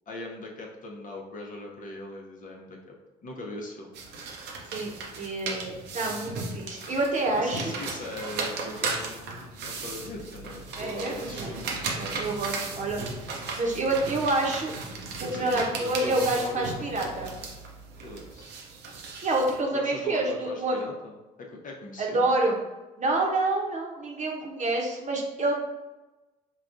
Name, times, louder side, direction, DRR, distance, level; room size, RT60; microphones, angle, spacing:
voice 1, 0.1-2.8 3.2-3.9 7.4-11.8 15.3-17.5 18.0-18.5 19.7-22.3, left 2 dB, 40° left, 0 dB, 0.9 m, -40 dB
sound 1, 3.9-19.6, right 3 dB, 60° right, 0.7 m, -36 dB
voice 2, 4.7-7.7 10.8-11.5 12.0-13.0 13.5-14.7 15.2-17.3 19.2-20.8 22.0-22.6 23.0-25.6, right 2 dB, 35° right, -1 dB, 1.0 m, -27 dB
5.6 x 2.3 x 2.5 m, 1.1 s
hypercardioid pair, 55°, 20 cm